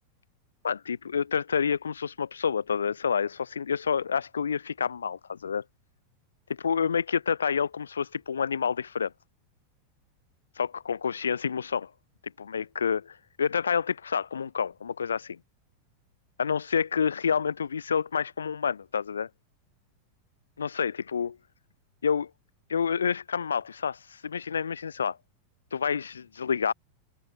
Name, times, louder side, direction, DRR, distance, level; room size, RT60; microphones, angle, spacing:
voice 1, 0.6-5.6 6.5-9.1 10.6-11.9 12.4-15.4 16.4-19.3 20.6-21.4 22.0-22.3 22.7-25.2 25.7-26.7, left 6 dB, 70° left, 0.6 m, -28 dB
open air
figure-of-eight pair, 90°, 0 cm